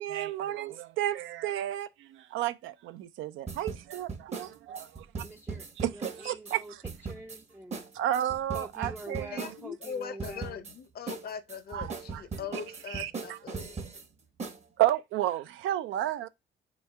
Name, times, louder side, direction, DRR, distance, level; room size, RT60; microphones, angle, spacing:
voice 1, 0.0-5.1 5.8-6.8 7.9-9.5 11.7-11.9 12.1-12.2 12.9-13.4 14.8-16.3, right 13 dB, 80° right, 0.4 m, -32 dB
sound 1, 3.5-6.6 6.8-7.4 7.7-7.9 8.1-9.9 10.2-10.7 11.1-14.0 14.4-14.6, right 4 dB, 35° right, 0.8 m, -38 dB
voice 2, 5.2-5.7 5.9-6.7 7.0-7.9 8.5-10.6, right 2 dB, 10° right, 0.4 m, -45 dB
voice 3, 9.3-13.8, left 7 dB, 50° left, 0.6 m, -41 dB
3.5 x 3.1 x 3.2 m
cardioid pair, 90°, 20 cm